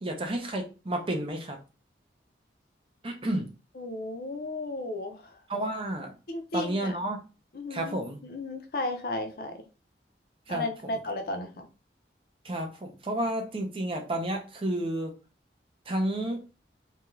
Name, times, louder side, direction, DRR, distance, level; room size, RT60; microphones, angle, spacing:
voice 1, 0.0-1.6 3.0-3.5 5.5-6.2 6.5-7.2 7.7-8.2 10.5-10.6 12.4-15.2 15.9-16.4, right 1 dB, 30° right, 4 dB, 0.5 m, -31 dB
voice 2, 3.8-5.4 6.3-7.0 7.5-9.7 10.5-11.7, left 2 dB, 55° left, 6 dB, 0.5 m, -34 dB
2.5 x 2.2 x 3.0 m, 0.31 s
head